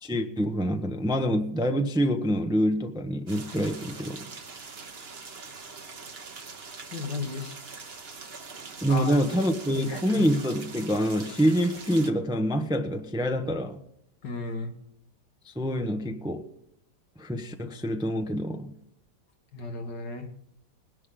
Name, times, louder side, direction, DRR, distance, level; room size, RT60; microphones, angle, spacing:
voice 1, 0.0-4.3 8.8-13.8 15.5-16.5 17.2-18.7, equal, 5° right, 6 dB, 0.6 m, -26 dB
sound 1, 3.3-12.1, right 4 dB, 40° right, 1.2 m, -43 dB
voice 2, 6.9-7.5 8.9-9.1 9.8-10.2 14.2-14.7 19.5-20.3, left 4 dB, 75° left, 4 dB, 2.3 m, -34 dB
20.0 x 10.5 x 3.8 m, 0.76 s
omnidirectional pair, 1.9 m